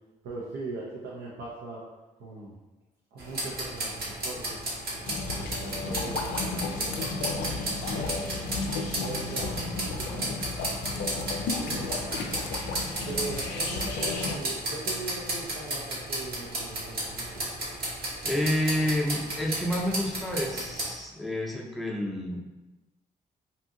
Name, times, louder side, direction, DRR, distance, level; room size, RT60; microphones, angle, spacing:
voice 1, 0.2-1.8 2.2-2.5 3.1-4.6 5.3-8.5 9.0-10.3 10.9-12.5 13.1-17.4, right 3 dB, 75° right, -5 dB, 0.6 m, -40 dB
sound 1, 3.2-20.9, right 1 dB, 55° right, 0.9 m, -34 dB
sound 2, 5.1-14.4, left 4 dB, 75° left, 0.4 m, -34 dB
voice 2, 18.2-22.4, left 1 dB, ahead, -2 dB, 0.6 m, -29 dB
2.7 x 2.5 x 2.6 m, 1.1 s
hypercardioid pair, 50°, 19 cm